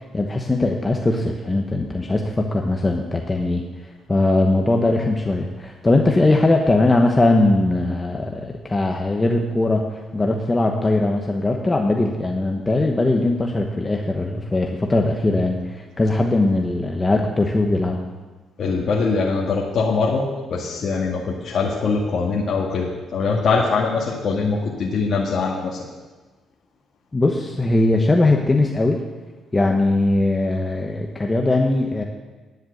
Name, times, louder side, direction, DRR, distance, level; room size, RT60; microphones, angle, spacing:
voice 1, 0.0-3.6 4.1-18.0 27.1-29.0 29.5-32.0, left 2 dB, 20° left, 2 dB, 1.1 m, -20 dB
voice 2, 18.6-25.8, left 4 dB, 55° left, -3 dB, 1.8 m, -22 dB
10.5 x 7.9 x 8.0 m, 1.3 s
cardioid pair, 90°, 0 cm